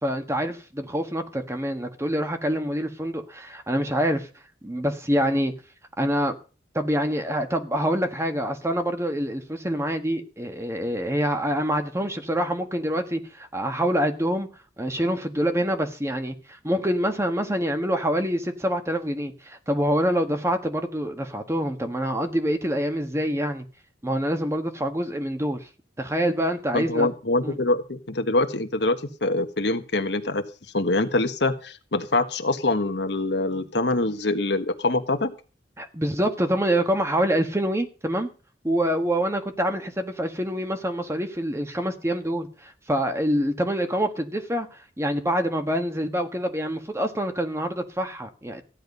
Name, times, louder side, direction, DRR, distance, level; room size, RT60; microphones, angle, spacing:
voice 1, 0.0-4.3 4.6-5.5 6.0-6.3 6.7-14.5 14.8-23.7 24.0-25.7 26.0-27.1 27.4-27.6 35.8-38.3 38.6-48.6, equal, 15° right, 1.5 m, -26 dB
voice 2, 26.7-30.4 30.7-35.3, left 2 dB, 70° left, 1.4 m, -24 dB
15.0 x 10.5 x 5.4 m
head